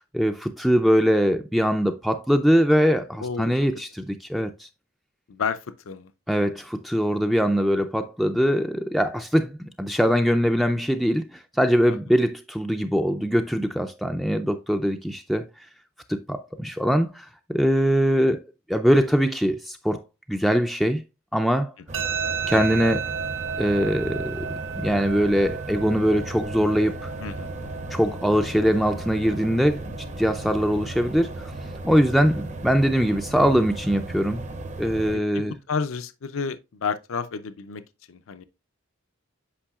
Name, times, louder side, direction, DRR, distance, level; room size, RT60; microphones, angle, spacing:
voice 1, 0.1-4.7 6.3-15.5 16.1-18.4 18.7-21.0 21.3-21.7 22.5-23.1 23.6-27.1 27.9-31.5 31.8-34.4 34.8-35.5, equal, ahead, 0.3 m, -22 dB
voice 2, 3.2-3.5 5.3-6.1 11.9-12.0 27.2-27.9 33.4-33.6 35.3-37.8 38.1-38.4, left 5 dB, 75° left, 0.5 m, -31 dB
sound 1, 21.9-35.2, right 2 dB, 35° right, 0.6 m, -36 dB
sound 2, 21.9-34.9, right 7 dB, 65° right, 0.7 m, -35 dB
8.5 x 5.4 x 2.3 m
head